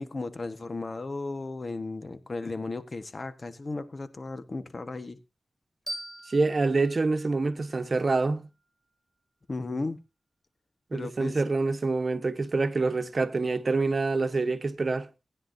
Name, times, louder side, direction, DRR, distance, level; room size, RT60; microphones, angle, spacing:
voice 1, 0.0-5.2 9.5-10.0 10.9-11.3, left 3 dB, 55° left, 1.2 m, -35 dB
sound 1, 5.9-8.7, equal, ahead, 5.3 m, -43 dB
voice 2, 6.3-8.5 10.9-15.1, right 3 dB, 55° right, 1.1 m, -26 dB
18.5 x 9.8 x 2.6 m
cardioid pair, 45°, 0 cm